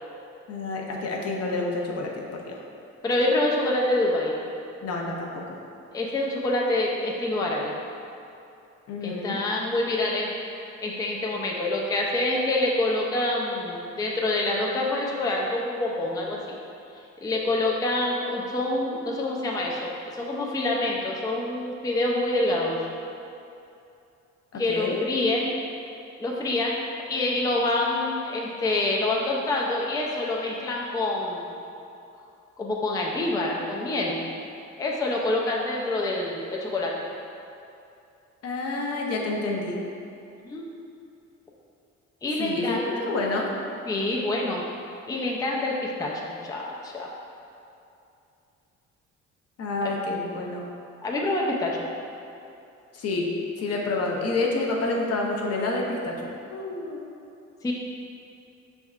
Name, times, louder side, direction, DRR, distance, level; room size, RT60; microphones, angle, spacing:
voice 1, 0.5-2.5 4.8-5.6 8.9-9.4 24.5-25.0 38.4-39.8 42.4-43.5 49.6-50.7 52.9-53.3 53.6-56.1 56.5-57.0, left 2 dB, 55° left, -1 dB, 0.7 m, -28 dB
voice 2, 3.0-4.3 5.9-7.7 9.0-10.3 10.8-16.6 17.2-22.9 24.6-25.5 26.2-26.8 27.1-31.5 32.6-34.2 34.8-37.1 40.5-40.7 42.2-43.0 43.9-44.6 45.1-47.1 51.0-51.9 57.6-57.7, left 2 dB, 10° left, -2 dB, 0.4 m, -26 dB
5.2 x 3.5 x 2.3 m, 2.7 s
cardioid pair, 90°, 30 cm